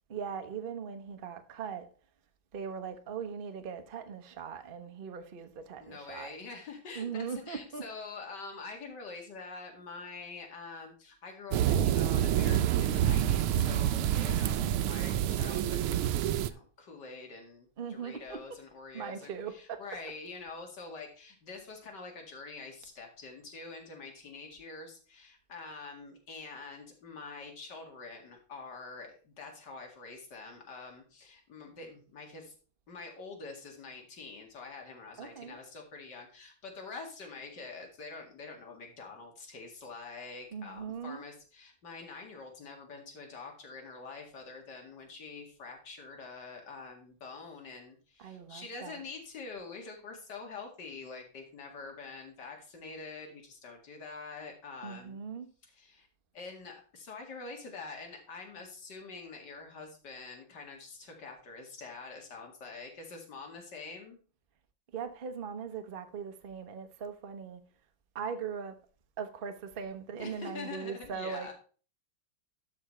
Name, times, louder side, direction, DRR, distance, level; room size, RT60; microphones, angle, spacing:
voice 1, 0.1-1.9 2.5-6.3 6.9-7.8 17.8-18.4 18.9-19.8 35.2-35.6 40.5-41.2 48.2-49.0 54.8-55.5 64.9-67.6 68.1-68.8 69.2-71.5, right 6 dB, 45° right, 0.7 m, -40 dB
voice 2, 5.8-32.5 32.9-55.2 55.8-56.1 56.3-64.2 70.2-71.5, left 4 dB, 55° left, 2.6 m, -46 dB
sound 1, 11.5-16.5, right 11 dB, 90° right, 1.5 m, -27 dB
12.0 x 4.9 x 4.3 m
omnidirectional pair, 2.3 m